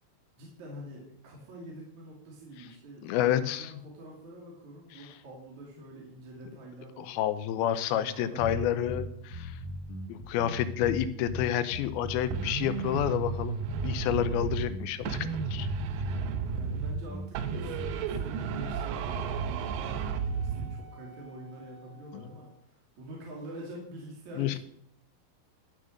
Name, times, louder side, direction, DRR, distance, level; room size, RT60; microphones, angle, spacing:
voice 1, 0.4-7.2 7.6-9.2 16.5-24.6, right 1 dB, 50° right, -2 dB, 3.7 m, -46 dB
voice 2, 3.0-3.7 7.0-9.1 9.3-9.6 10.1-13.6 13.8-15.7 22.1-22.2 24.4-24.6, left 11 dB, 80° left, 12 dB, 2.4 m, -29 dB
sound 1, 8.4-18.0, left 1 dB, 55° left, 1.8 m, -38 dB
sound 2, 12.3-14.8 15.1-17.1 17.4-20.8, right 6 dB, 75° right, 2.1 m, -33 dB
Wind instrument woodwind instrument, 18.5-22.6, right 4 dB, 40° left, 3.5 m, -55 dB
13.0 x 7.6 x 6.5 m, 0.68 s
omnidirectional pair, 4.7 m